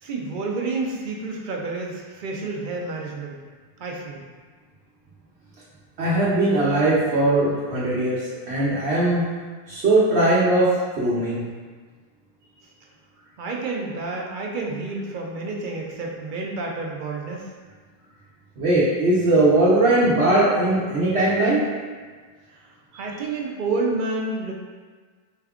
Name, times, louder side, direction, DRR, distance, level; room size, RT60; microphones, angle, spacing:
voice 1, 0.0-3.4 3.8-4.2 13.4-17.5 22.9-24.5, right 3 dB, 60° right, 0 dB, 0.7 m, -29 dB
voice 2, 6.0-9.2 9.7-11.5 18.6-21.6, right 2 dB, 85° right, -8 dB, 1.0 m, -20 dB
4.3 x 2.3 x 3.5 m, 1.5 s
omnidirectional pair, 1.0 m